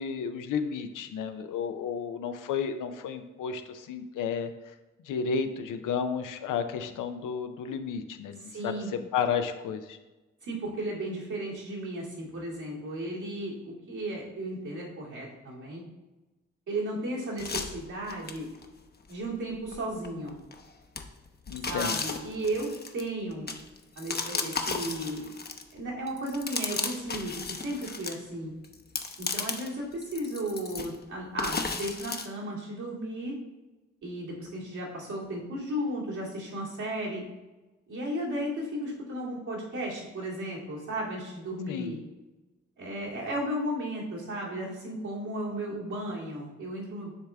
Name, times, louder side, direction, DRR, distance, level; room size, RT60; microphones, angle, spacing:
voice 1, 0.0-4.5 5.1-8.7 9.1-10.0 21.5-22.0 41.7-41.9, left 6 dB, 80° left, 8 dB, 0.6 m, -32 dB
voice 2, 8.4-8.9 10.4-15.8 16.7-18.5 19.1-20.3 21.7-23.5 24.0-25.3 25.7-28.5 29.2-33.4 34.0-37.2 37.9-42.0 42.8-47.1, right 1 dB, 70° right, -5 dB, 2.2 m, -34 dB
sound 1, 17.4-18.7 19.1-19.2 19.7-20.6 21.0-25.8 26.1-28.2 28.6-29.7 30.0-31.0 31.4-32.3, left 4 dB, 30° left, 0.8 m, -34 dB
9.6 x 3.4 x 3.4 m, 1.1 s
supercardioid pair, 40°, 31 cm